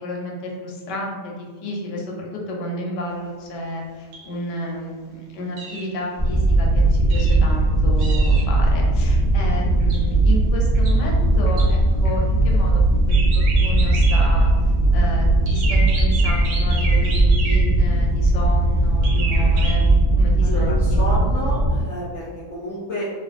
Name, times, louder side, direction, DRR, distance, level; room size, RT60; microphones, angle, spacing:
voice 1, 0.0-14.5 14.9-19.9 20.2-21.0, left 1 dB, 85° left, -1 dB, 1.3 m, -31 dB
sound 1, 4.1-4.3 5.6-5.9 7.1-7.4 8.0-8.5 9.8-10.1 10.7-11.0 11.5-11.8 12.1-12.2 13.1-14.5 15.5-17.9 19.0-20.0, right 3 dB, 75° right, 1.1 m, -32 dB
sound 2, 6.2-21.8, right 2 dB, 20° right, 0.5 m, -18 dB
voice 2, 20.4-23.0, left 1 dB, 60° left, -8 dB, 0.8 m, -30 dB
2.8 x 2.5 x 2.4 m, 1.5 s
omnidirectional pair, 1.8 m